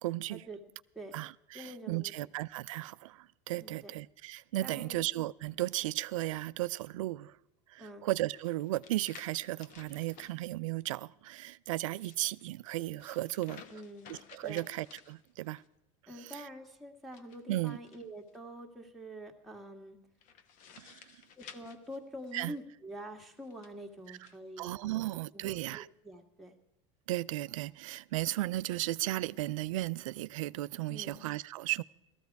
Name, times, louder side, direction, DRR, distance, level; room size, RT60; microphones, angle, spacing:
voice 1, 0.0-0.4 1.1-7.4 7.7-13.6 14.1-15.6 16.1-16.5 17.5-17.8 20.8-21.1 22.3-22.5 24.1-24.2 24.6-25.9 27.1-31.8, right 17 dB, 85° right, 0.4 m, -35 dB
voice 2, 1.5-2.1 3.6-3.9 4.6-5.0 7.8-8.1 13.7-14.2 14.4-14.6 16.1-20.0 21.4-25.0 25.3-26.5 30.9-31.2, equal, ahead, 1.7 m, -46 dB
sound 1, 8.3-10.4 11.8-15.7 17.0-18.4 20.2-22.6 23.4-24.4, left 7 dB, 55° left, 1.1 m, -55 dB
16.5 x 14.0 x 4.6 m
supercardioid pair, 115°, 16 cm